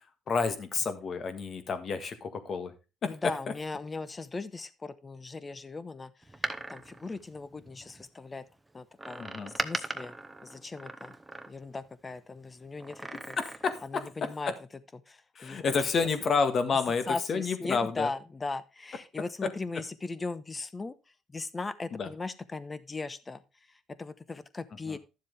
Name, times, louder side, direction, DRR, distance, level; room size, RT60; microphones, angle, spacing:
voice 1, 0.3-2.7 3.0-3.1 9.2-9.5 13.4-14.0 15.4-18.1 19.4-19.5 21.9-22.1 24.9-25.0, left 5 dB, 50° left, 9 dB, 1.8 m, -29 dB
voice 2, 3.1-6.1 6.7-8.4 8.7-9.2 9.5-10.1 10.4-11.1 11.5-13.4 13.8-14.5 15.1-15.6 17.1-21.0 21.3-23.4 24.0-25.0, left 3 dB, 25° left, 14 dB, 1.0 m, -38 dB
Door, 6.2-8.0 9.0-11.9 12.8-13.9 14.2-14.3, right 2 dB, 10° right, 1.0 m, -39 dB
12.0 x 7.4 x 3.4 m, 0.29 s
cardioid pair, 90°, 0 cm